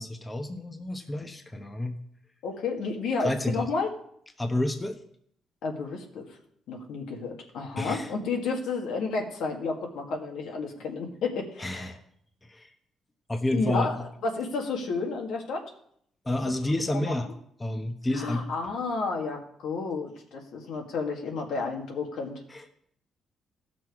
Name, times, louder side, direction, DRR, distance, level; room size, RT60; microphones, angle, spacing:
voice 1, 0.0-2.0 3.2-3.7 4.4-5.0 7.8-8.1 11.6-12.0 12.5-12.7 13.3-13.9 16.2-17.3 17.6-18.4 22.5-22.7, left 1 dB, 20° left, 5 dB, 1.1 m, -30 dB
voice 2, 2.4-3.9 5.6-6.3 6.7-11.9 13.5-14.0 14.2-15.6 16.4-16.5 17.2-17.3 18.1-22.4, left 4 dB, 80° left, 1 dB, 1.8 m, -31 dB
15.5 x 6.2 x 4.8 m, 0.67 s
cardioid pair, 90°, 0 cm